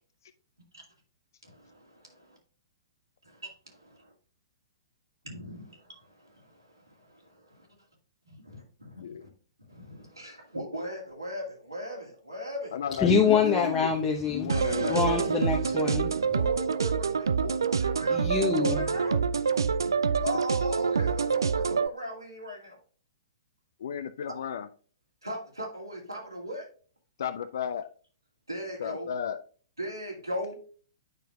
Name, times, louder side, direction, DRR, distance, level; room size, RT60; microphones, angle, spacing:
voice 1, 1.4-2.4 3.2-4.1 5.2-7.7 8.3-9.3 9.7-12.7 13.1-13.8 16.3-19.2 20.2-22.8 25.2-26.7 28.5-29.1 29.8-30.6, equal, 85° right, 2.3 m, -39 dB
voice 2, 9.0-9.3 12.7-13.9 14.3-15.4 23.8-24.7 27.2-27.9 28.8-29.4, left 8 dB, 55° left, 0.4 m, -33 dB
voice 3, 13.0-14.5 14.9-16.1 18.1-18.8, left 5 dB, 15° left, 0.9 m, -25 dB
sound 1, 14.5-21.9, right 6 dB, 70° right, 0.3 m, -26 dB
8.9 x 5.9 x 2.3 m
figure-of-eight pair, 115°, 2 cm